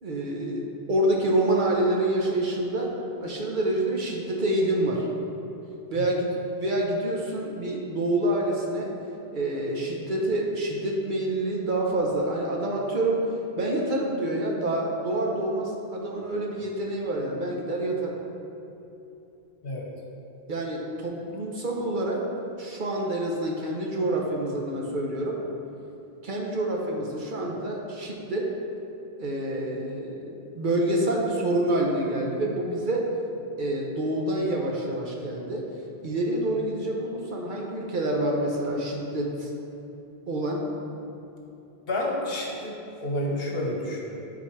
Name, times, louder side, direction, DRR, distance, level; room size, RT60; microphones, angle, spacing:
voice 1, 0.0-0.6 0.9-2.9 3.2-5.1 5.9-6.3 6.6-8.9 9.3-13.2 13.6-18.2 20.5-22.2 22.6-25.4 26.2-28.5 29.2-33.1 33.6-35.6 36.0-39.5 40.3-40.6, right 1 dB, 55° right, -1 dB, 1.0 m, -27 dB
voice 2, 41.9-42.7 43.0-44.2, left 1 dB, 70° left, -2 dB, 1.3 m, -29 dB
11.5 x 4.1 x 3.2 m, 2.9 s
omnidirectional pair, 1.0 m